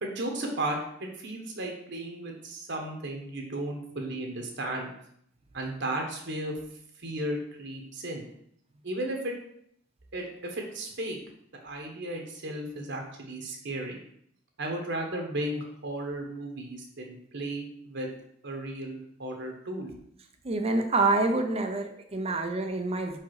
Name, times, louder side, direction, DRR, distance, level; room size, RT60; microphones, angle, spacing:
voice 1, 0.0-4.9 5.5-6.5 7.0-8.2 8.8-9.3 10.1-11.2 11.6-14.0 14.6-18.1 18.4-19.9, right 1 dB, 60° right, 2 dB, 1.3 m, -34 dB
voice 2, 20.4-23.2, right 3 dB, 30° right, 5 dB, 0.6 m, -27 dB
5.2 x 4.7 x 4.8 m, 0.69 s
head